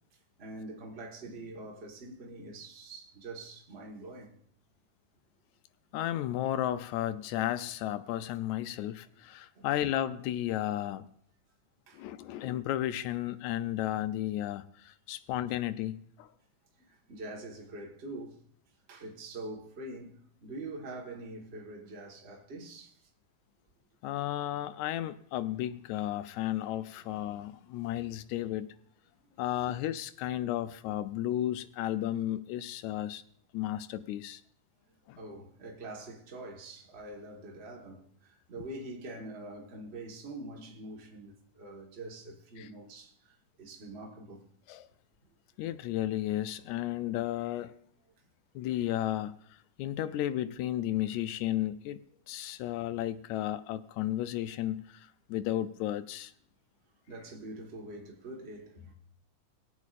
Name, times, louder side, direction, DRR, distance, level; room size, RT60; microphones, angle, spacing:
voice 1, 0.4-4.4 9.5-9.7 11.9-12.1 16.8-18.4 18.9-23.0 30.4-30.5 35.2-44.5 52.4-52.5 57.1-58.9, right 2 dB, 55° right, 0.6 m, -44 dB
voice 2, 5.9-11.1 11.9-16.3 24.0-28.7 29.4-33.2 33.5-34.4 35.1-35.2 38.6-38.7 42.6-42.7 44.7-44.9 45.6-47.7 48.6-49.4 49.8-52.0 52.3-56.3, left 13 dB, 80° left, 1.7 m, -33 dB
22.5 x 8.3 x 2.5 m
omnidirectional pair, 3.6 m